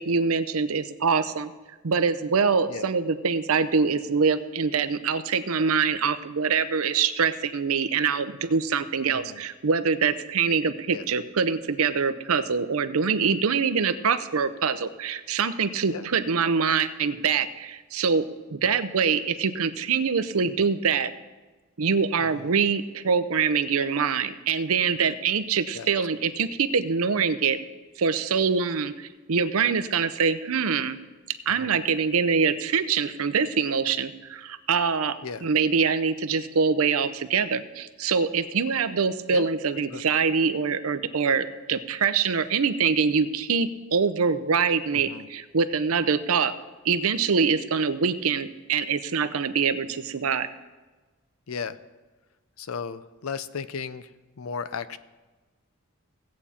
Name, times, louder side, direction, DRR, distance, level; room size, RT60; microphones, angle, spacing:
voice 1, 0.0-1.5 1.8-18.2 18.5-21.1 21.8-27.6 28.0-31.0 31.5-46.5 46.8-50.5, right 5 dB, 80° right, 12 dB, 0.6 m, -24 dB
voice 2, 9.1-9.4 10.9-11.0 15.9-16.1 18.6-18.8 22.2-22.5 25.7-25.9 31.5-31.8 35.2-35.5 39.3-39.5 39.9-40.0 44.9-45.3 51.5-51.8 52.6-54.1 54.4-55.0, left 6 dB, 75° left, 14 dB, 0.5 m, -35 dB
16.5 x 8.6 x 4.3 m, 1.2 s
head